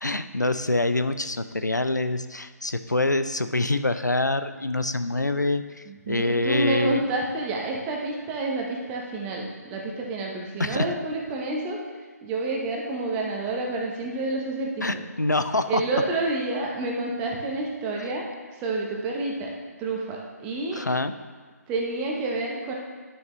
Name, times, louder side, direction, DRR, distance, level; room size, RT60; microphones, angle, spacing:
voice 1, 0.0-7.0 10.6-10.9 14.8-15.8 20.7-21.1, left 2 dB, 90° left, 10 dB, 0.5 m, -25 dB
voice 2, 5.9-11.8 12.2-15.0 15.7-18.3 18.6-19.5 19.8-20.8 21.7-22.7, right 2 dB, 15° right, -1 dB, 0.9 m, -29 dB
10.5 x 6.6 x 3.1 m, 1.4 s
figure-of-eight pair, 145°, 9 cm